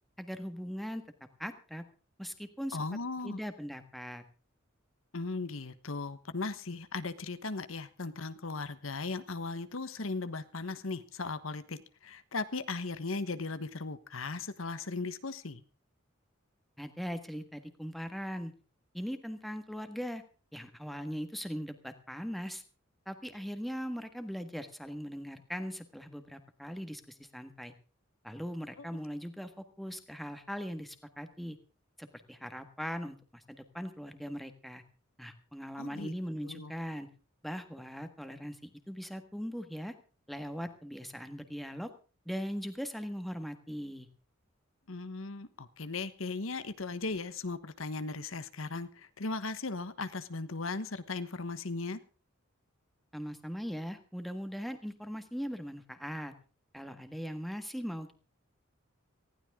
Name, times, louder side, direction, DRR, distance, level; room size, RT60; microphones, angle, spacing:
voice 1, 0.2-1.0 1.4-1.8 2.2-2.8 3.2-4.2 16.8-18.5 18.9-20.2 20.5-22.6 23.0-27.7 28.2-29.5 29.8-31.6 32.0-34.8 35.2-37.1 37.4-39.9 40.3-41.9 42.2-44.1 53.1-56.3 56.7-58.1, equal, ahead, 8 dB, 1.6 m, -40 dB
voice 2, 2.7-3.4 5.1-15.6 28.8-28.9 35.8-36.1 36.4-36.7 44.9-52.0, left 3 dB, 80° left, 12 dB, 1.2 m, -37 dB
19.5 x 15.5 x 3.7 m, 0.35 s
head